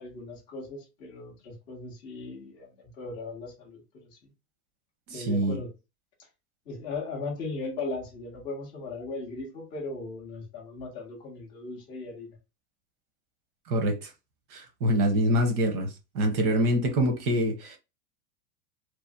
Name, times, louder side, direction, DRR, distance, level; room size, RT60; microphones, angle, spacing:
voice 1, 0.0-4.3 5.1-5.7 6.7-12.4, left 3 dB, 10° left, 0.3 m, -38 dB
voice 2, 5.1-5.6 13.7-14.1 14.5-17.8, right 1 dB, 65° right, 1.1 m, -25 dB
3.1 x 2.1 x 2.6 m
supercardioid pair, 150°, 49 cm